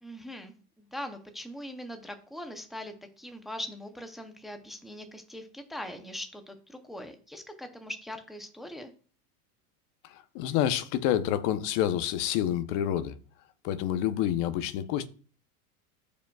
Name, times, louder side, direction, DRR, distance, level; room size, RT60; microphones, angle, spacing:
voice 1, 0.0-8.9, left 1 dB, ahead, 0.6 m, -41 dB
voice 2, 10.1-13.2 13.6-15.1, left 11 dB, 40° left, 0.8 m, -28 dB
14.0 x 5.2 x 2.3 m
supercardioid pair, 135°, 44 cm